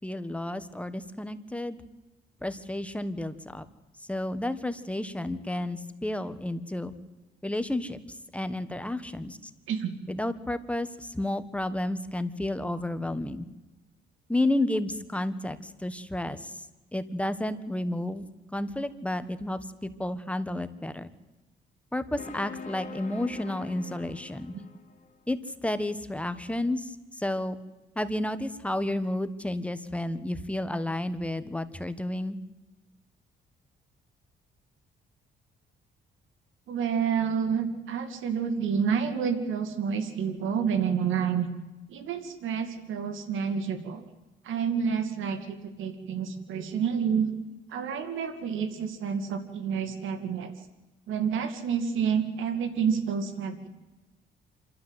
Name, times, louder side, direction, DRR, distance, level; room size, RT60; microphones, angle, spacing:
voice 1, 0.0-1.8 2.4-3.6 4.1-6.9 7.4-8.0 8.3-9.4 10.1-13.5 14.3-16.6 16.9-18.2 18.5-21.1 21.9-24.5 25.3-27.6 27.9-32.4, left 1 dB, 5° left, 11 dB, 1.4 m, -31 dB
sound 1, 22.2-25.2, left 5 dB, 40° left, 2.8 m, -43 dB
voice 2, 36.7-41.5 41.9-44.0 44.4-47.3 47.7-50.5 51.1-53.7, right 7 dB, 80° right, 8 dB, 2.4 m, -29 dB
27.5 x 13.0 x 8.1 m, 1.1 s
cardioid pair, 90°, 20 cm